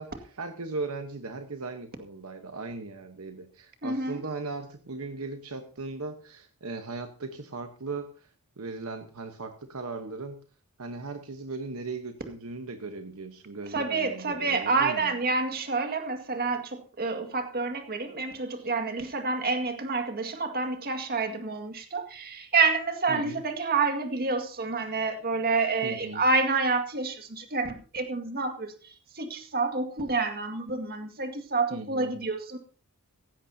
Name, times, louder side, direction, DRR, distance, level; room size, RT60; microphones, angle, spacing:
voice 1, 0.0-8.3 8.6-10.4 10.8-15.1 18.6-18.7 23.1-23.4 25.8-26.2 31.7-32.2, right 3 dB, 70° right, 6 dB, 1.1 m, -38 dB
voice 2, 3.8-4.2 13.7-32.6, right 3 dB, 45° right, 6 dB, 2.0 m, -28 dB
16.5 x 15.0 x 2.8 m, 0.37 s
head